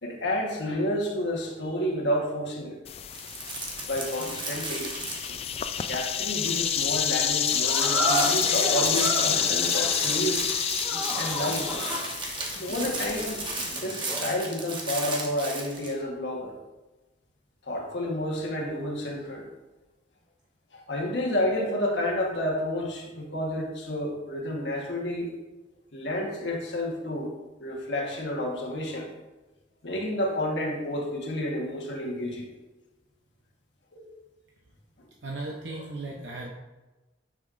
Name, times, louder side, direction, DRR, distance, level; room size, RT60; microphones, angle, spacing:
voice 1, 0.0-2.8 3.9-4.9 5.3-5.4 5.9-10.5 11.2-11.7 12.6-13.4 13.8-16.6 17.6-19.5 20.7-25.3 25.9-27.3 27.6-29.1 29.8-32.5 33.9-34.1 35.0-35.1, left 1 dB, 75° left, 0 dB, 1.3 m, -30 dB
sound 1, 2.9-13.8, left 9 dB, 35° left, 0.3 m, -29 dB
sound 2, 3.1-5.7 6.0-6.1 6.4-15.9, right 3 dB, 25° right, 1.1 m, -35 dB
sound 3, 7.6-14.4, equal, 10° right, 1.3 m, -32 dB
voice 2, 35.2-36.5, right 2 dB, 85° right, -1 dB, 0.8 m, -36 dB
9.5 x 5.2 x 2.6 m, 1.1 s
head